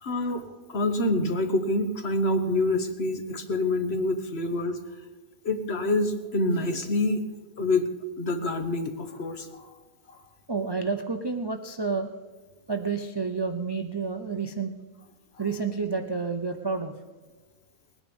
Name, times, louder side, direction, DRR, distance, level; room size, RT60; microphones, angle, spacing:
voice 1, 0.0-4.8 5.4-7.2 7.6-7.9 8.2-9.7 10.1-10.2, left 2 dB, 45° left, 8 dB, 1.3 m, -27 dB
voice 2, 10.5-12.1 12.7-14.7 15.4-16.9, right 4 dB, 40° right, 6 dB, 0.3 m, -29 dB
19.5 x 9.9 x 5.3 m, 1.3 s
omnidirectional pair, 1.6 m